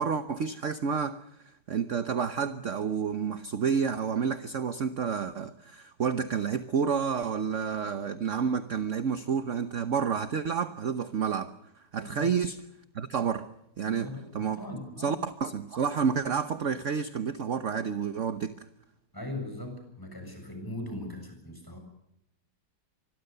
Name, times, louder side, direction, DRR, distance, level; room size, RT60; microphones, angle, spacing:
voice 1, 0.0-12.6 12.9-13.5 13.8-14.1 14.3-14.6 15.0-18.7, right 6 dB, 50° right, 10 dB, 1.2 m, -30 dB
voice 2, 12.0-12.4 13.9-15.2 19.1-21.8, left 2 dB, 10° left, 5 dB, 7.3 m, -40 dB
25.5 x 22.0 x 6.8 m, 0.80 s
omnidirectional pair, 1.8 m